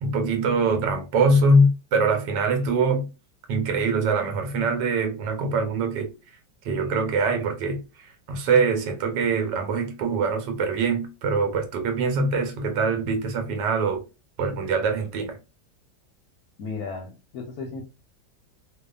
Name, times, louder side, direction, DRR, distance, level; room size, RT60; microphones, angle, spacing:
voice 1, 0.0-3.1 3.5-6.1 6.6-7.8 8.3-14.0 14.4-15.4, right 3 dB, 80° right, 1.3 m, -23 dB
voice 2, 16.6-17.8, left 4 dB, 70° left, 1.0 m, -34 dB
2.7 x 2.3 x 2.2 m
omnidirectional pair, 1.9 m